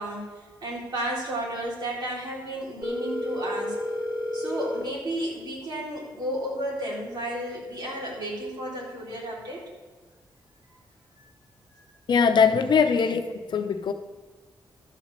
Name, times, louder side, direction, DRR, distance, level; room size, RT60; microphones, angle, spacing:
voice 1, 0.0-3.7 4.3-9.6 11.7-11.9, right 1 dB, 60° right, -3 dB, 3.4 m, -33 dB
Telephone, 2.8-4.8, left 1 dB, 20° right, 1.6 m, -30 dB
voice 2, 12.1-13.2 13.5-13.9, left 6 dB, 65° left, 7 dB, 0.8 m, -21 dB
12.0 x 4.1 x 7.5 m, 1.4 s
cardioid pair, 100°, 8 cm